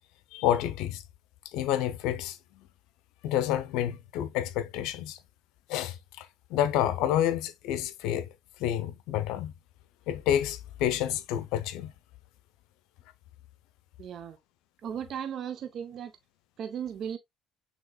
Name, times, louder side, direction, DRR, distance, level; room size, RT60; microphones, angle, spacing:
voice 1, 0.3-1.0 1.4-2.6 3.2-5.2 5.7-8.3 8.6-9.5 10.1-11.9, left 11 dB, 75° left, 0.6 m, -29 dB
voice 2, 14.0-14.4 14.8-16.1 16.6-17.2, right 8 dB, 55° right, 0.6 m, -36 dB
6.5 x 2.9 x 2.2 m
supercardioid pair, 95°, 0 cm